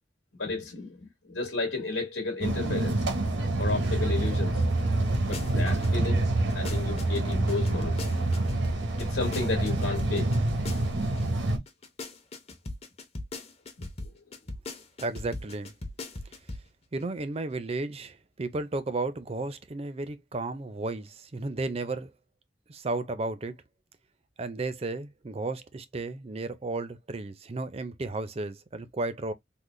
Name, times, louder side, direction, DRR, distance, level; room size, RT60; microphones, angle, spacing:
voice 1, 0.4-3.0 3.6-4.6 5.3-6.3 6.5-8.0 9.0-10.3 13.8-13.9, left 3 dB, 75° left, 1.2 m, -32 dB
sound 1, 2.4-11.6, right 2 dB, 85° right, 0.8 m, -27 dB
sound 2, 5.1-5.9 6.3-11.2 11.5-16.7 17.0-17.1, left 2 dB, 35° left, 0.7 m, -39 dB
voice 2, 15.0-15.7 16.9-22.1 22.7-23.5 24.4-29.3, right 2 dB, 35° right, 0.5 m, -33 dB
3.8 x 2.0 x 3.1 m
head